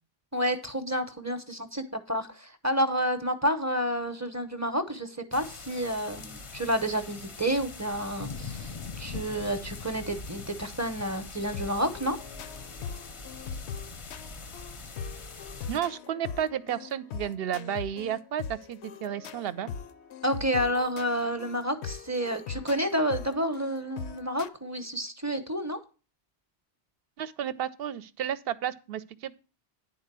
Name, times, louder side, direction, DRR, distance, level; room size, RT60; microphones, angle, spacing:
voice 1, 0.3-12.2 20.2-25.8, equal, 15° right, 0.8 m, -30 dB
sound 1, 5.3-15.8, left 4 dB, 35° left, 0.6 m, -42 dB
sound 2, 11.5-24.5, left 7 dB, 80° left, 0.9 m, -41 dB
voice 2, 15.7-19.7 27.2-29.4, right 10 dB, 65° right, 0.8 m, -32 dB
10.0 x 4.3 x 6.7 m
omnidirectional pair, 1.1 m